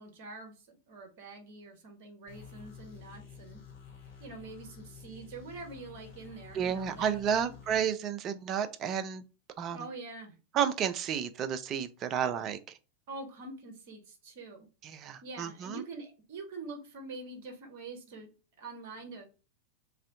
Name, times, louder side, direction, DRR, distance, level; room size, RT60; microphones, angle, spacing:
voice 1, 0.0-3.6 4.2-7.5 9.7-10.4 13.1-14.7 15.2-18.3 18.6-19.3, right 3 dB, 50° right, 0.9 m, -45 dB
sound 1, 2.3-7.8, left 7 dB, 55° left, 1.0 m, -50 dB
voice 2, 6.5-9.2 9.6-9.8 10.5-12.6 14.8-15.8, right 8 dB, 30° right, 0.4 m, -31 dB
2.6 x 2.4 x 3.5 m
figure-of-eight pair, 90°, 0 cm